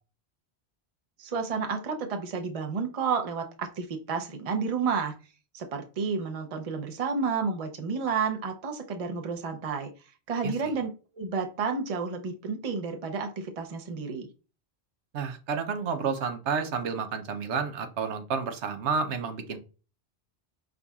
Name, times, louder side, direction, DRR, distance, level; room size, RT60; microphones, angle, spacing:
voice 1, 1.2-5.1 5.5-9.9 10.3-10.9 11.1-14.3, right 5 dB, 40° right, 5 dB, 0.7 m, -31 dB
voice 2, 15.1-19.6, right 5 dB, 90° right, 7 dB, 1.0 m, -30 dB
5.3 x 3.7 x 2.3 m, 0.34 s
omnidirectional pair, 1.1 m